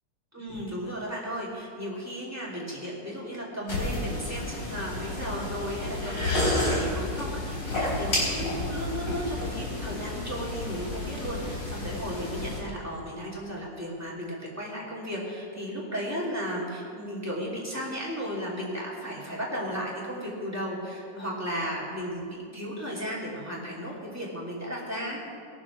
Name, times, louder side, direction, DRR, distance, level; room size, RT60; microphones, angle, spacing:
voice 1, 0.3-25.2, equal, 10° right, -6 dB, 3.0 m, -35 dB
sound 1, 3.7-12.6, left 1 dB, 75° left, 5.3 m, -31 dB
21.0 x 7.1 x 6.2 m, 2.3 s
omnidirectional pair, 2.0 m